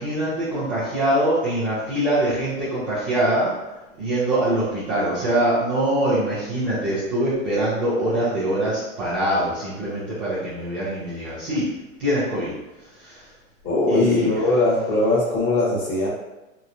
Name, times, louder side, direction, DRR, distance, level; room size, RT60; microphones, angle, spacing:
voice 1, 0.0-3.5 4.0-11.7 12.0-12.5 12.8-13.3 13.9-14.4, right 1 dB, 20° right, -12 dB, 0.3 m, -23 dB
voice 2, 13.6-16.1, left 2 dB, 40° left, -5 dB, 1.0 m, -20 dB
2.9 x 2.0 x 2.4 m, 1.0 s
hypercardioid pair, 125°, 42 cm